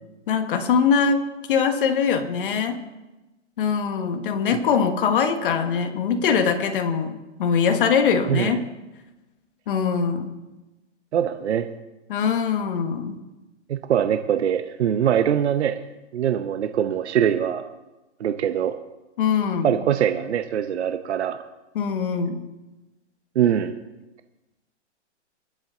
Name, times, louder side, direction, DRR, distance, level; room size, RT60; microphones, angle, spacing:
voice 1, 0.3-1.2 1.5-2.8 3.6-8.6 9.7-10.3 12.1-13.2 19.2-19.7 21.7-22.4, left 6 dB, 50° left, 6 dB, 1.5 m, -22 dB
voice 2, 8.3-8.6 11.1-11.7 13.7-15.8 16.1-17.7 18.2-18.8 19.6-21.5 23.3-23.8, right 9 dB, 70° right, 8 dB, 0.8 m, -23 dB
22.0 x 7.8 x 3.9 m, 1.1 s
hypercardioid pair, 165°, 35 cm